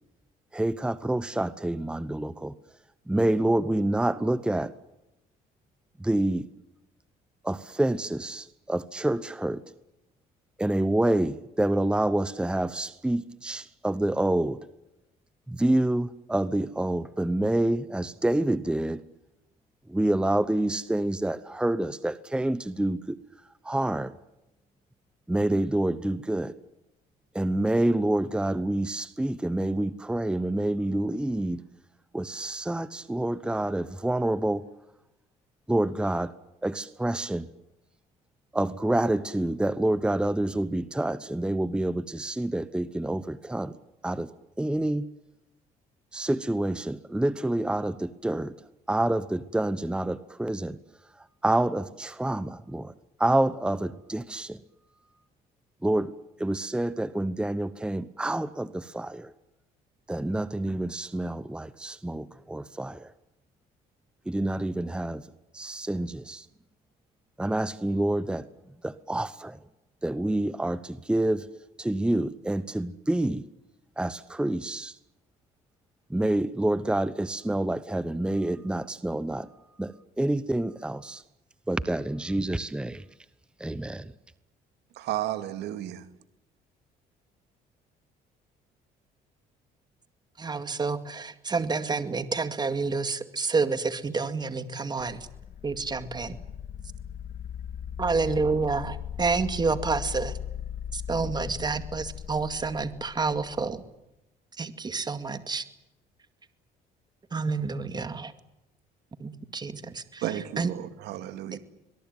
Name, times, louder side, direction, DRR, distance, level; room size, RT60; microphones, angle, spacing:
voice 1, 0.5-2.5 3.1-4.7 6.0-6.5 7.4-9.6 10.6-14.6 15.5-19.0 19.9-23.2 23.6-24.1 25.3-26.5 27.3-31.6 32.1-34.6 35.7-36.3 36.6-37.5 38.5-43.7 44.0-44.3 44.6-45.1 46.1-48.5 48.9-50.8 51.2-52.9 53.2-54.6 55.8-56.1 56.4-59.3 60.1-63.1 64.3-65.3 65.5-66.5 67.4-68.5 68.8-69.6 70.0-71.5 71.8-73.4 74.0-75.0 76.1-79.5 79.8-81.2 81.7-83.0 83.6-84.1, right 1 dB, 5° right, 0.9 m, -27 dB
voice 2, 84.9-86.1 110.2-111.6, right 13 dB, 80° right, 2.3 m, -33 dB
voice 3, 90.4-95.2 95.6-96.4 98.0-100.4 100.9-103.8 104.6-105.6 107.3-108.3 109.2-110.2 110.6-110.7 111.5-111.6, right 4 dB, 25° right, 2.2 m, -29 dB
sound 1, 95.0-103.8, left 9 dB, 50° left, 1.3 m, -38 dB
23.0 x 22.0 x 9.2 m
cardioid pair, 110°, 17 cm